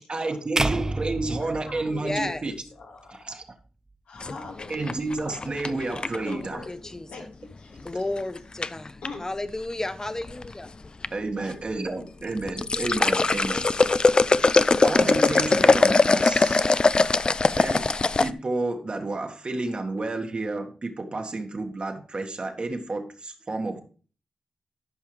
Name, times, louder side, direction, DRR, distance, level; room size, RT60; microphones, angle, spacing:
voice 1, 0.0-2.6 3.2-3.4 4.7-6.6 11.1-14.0 14.8-16.7 17.5-23.8, right 2 dB, 45° right, 1.7 m, -31 dB
sound 1, 0.6-2.8, right 2 dB, 25° right, 0.5 m, -29 dB
voice 2, 1.4-2.1 2.8-3.3 4.1-5.6 5.9-6.0 6.2-7.9 9.0-9.3, left 3 dB, 85° left, 2.1 m, -43 dB
voice 3, 2.0-2.5 6.4-7.3 7.8-10.7, left 2 dB, 25° left, 0.9 m, -33 dB
sound 2, 4.2-6.3 7.9-8.2 8.6-9.1 10.0-10.5 10.8-11.1 11.5-11.6 12.3-18.3, left 3 dB, 40° left, 0.4 m, -21 dB
13.0 x 5.6 x 3.3 m
supercardioid pair, 45°, 2 cm